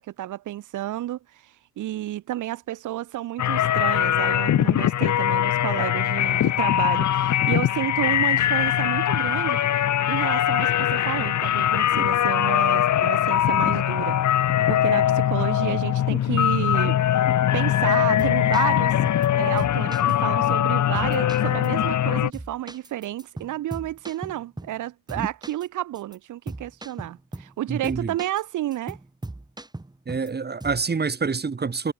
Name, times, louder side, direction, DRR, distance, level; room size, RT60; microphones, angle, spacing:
voice 1, 0.0-14.2 14.7-17.0 17.5-29.0, right 14 dB, 80° right, 3.4 m, -31 dB
sound 1, 3.4-22.3, left 11 dB, 70° left, 4.6 m, -22 dB
sound 2, 18.0-19.3 19.6-20.1 20.4-20.5 21.0-22.1 22.3-24.8 25.1-25.7 26.0-26.2 26.5-27.6 27.8-28.4 28.7-30.3 30.6-30.9, right 2 dB, 15° right, 7.5 m, -38 dB
voice 2, 27.7-28.1 30.1-31.9, right 5 dB, 35° right, 7.1 m, -27 dB
cardioid pair, 90°, 30 cm